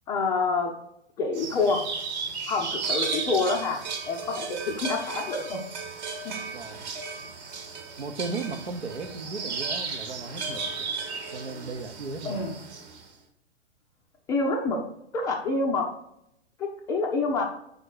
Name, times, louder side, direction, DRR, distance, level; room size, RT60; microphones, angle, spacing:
voice 1, 0.1-0.7 1.2-1.9 2.5-5.6 6.2-6.3 12.2-12.6 14.3-14.8 15.1-15.9 16.6-17.4, left 3 dB, 10° left, 1 dB, 0.4 m, -27 dB
sound 1, 1.3-13.0, right 4 dB, 40° right, 1.2 m, -34 dB
voice 2, 6.5-6.8 8.0-11.0 11.3-12.4, right 3 dB, 75° right, 7 dB, 0.9 m, -36 dB
5.3 x 4.3 x 4.6 m, 0.77 s
figure-of-eight pair, 110°, 32 cm